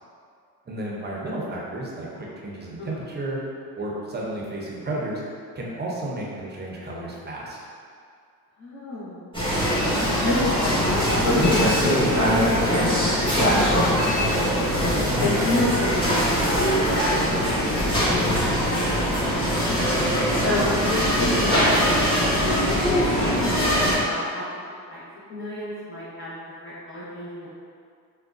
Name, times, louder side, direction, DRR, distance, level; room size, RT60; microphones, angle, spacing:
voice 1, 0.7-3.4 3.8-5.2 5.6-7.6 15.1-15.3 19.9-20.1, right 1 dB, 25° right, -3 dB, 0.6 m, -32 dB
voice 2, 8.6-9.3 9.9-14.7 15.2-17.1 17.6-19.5 20.4-20.8 21.2-22.0 22.4-24.4 24.9-25.0 25.3-26.3 26.6-27.5, left 1 dB, 30° left, -10 dB, 0.9 m, -31 dB
sound 1, 9.3-24.0, equal, 15° left, 1.2 m, -21 dB
3.5 x 2.2 x 2.4 m, 2.2 s
cardioid pair, 85°, 39 cm